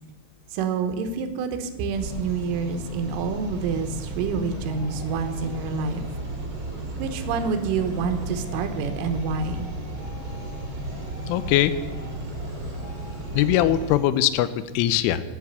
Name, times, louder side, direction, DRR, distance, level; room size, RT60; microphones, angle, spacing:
voice 1, 0.5-6.1 7.0-9.7, right 5 dB, 85° right, 8 dB, 3.5 m, -28 dB
sound 1, 1.9-14.0, right 2 dB, 50° right, 1.1 m, -34 dB
sound 2, 2.6-14.0, left 4 dB, 55° left, 3.0 m, -49 dB
voice 2, 11.3-11.8 13.3-15.2, left 12 dB, 85° left, 14 dB, 3.1 m, -21 dB
16.0 x 5.9 x 8.0 m, 1.2 s
omnidirectional pair, 5.7 m